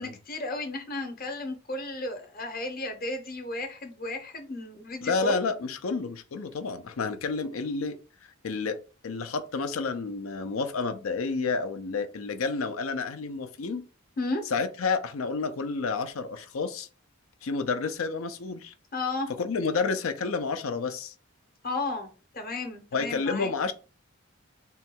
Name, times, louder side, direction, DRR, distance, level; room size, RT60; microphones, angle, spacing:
voice 1, 0.0-5.4 14.2-14.4 18.9-19.3 21.6-23.5, left 2 dB, 45° left, 0.8 m, -33 dB
voice 2, 5.0-8.0 8.4-8.8 9.0-13.8 14.5-16.9 17.4-18.7 19.4-21.1 22.9-23.7, left 4 dB, 85° left, 0.5 m, -30 dB
3.7 x 2.3 x 4.3 m
head